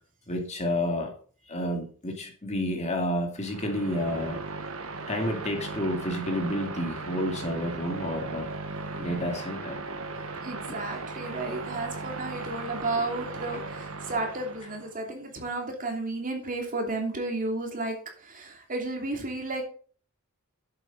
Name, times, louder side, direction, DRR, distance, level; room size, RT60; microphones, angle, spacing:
voice 1, 0.3-1.1 1.5-4.4 5.1-8.5 9.0-9.8 10.7-10.8, left 1 dB, 30° left, 3 dB, 2.5 m, -30 dB
sound 1, 3.4-14.9, right 3 dB, 65° right, 1.6 m, -37 dB
voice 2, 10.4-19.7, right 2 dB, 40° right, 2 dB, 2.8 m, -33 dB
11.0 x 8.4 x 4.1 m, 0.42 s
head